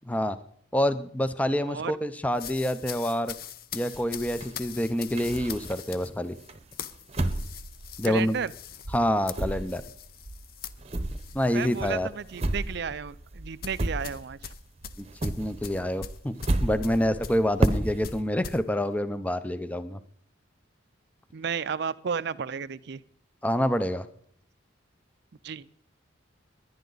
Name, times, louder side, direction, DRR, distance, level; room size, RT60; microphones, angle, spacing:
voice 1, 0.1-0.4 0.7-3.3 3.7-6.4 8.0-8.4 8.9-9.8 11.3-12.1 15.0-20.0 23.4-24.1, equal, 10° left, 12 dB, 0.5 m, -27 dB
sound 1, 2.3-12.0 12.3-12.6 13.6-18.6, left 8 dB, 50° left, 0.7 m, -42 dB
sound 2, 3.9-6.0 6.5-8.6 8.8-14.5 14.8-18.2, right 1 dB, 30° right, 0.9 m, -32 dB
voice 2, 8.0-8.5 11.5-14.5 21.3-23.0 25.4-25.7, right 6 dB, 55° right, 17 dB, 0.5 m, -33 dB
20.0 x 11.0 x 3.9 m, 0.62 s
head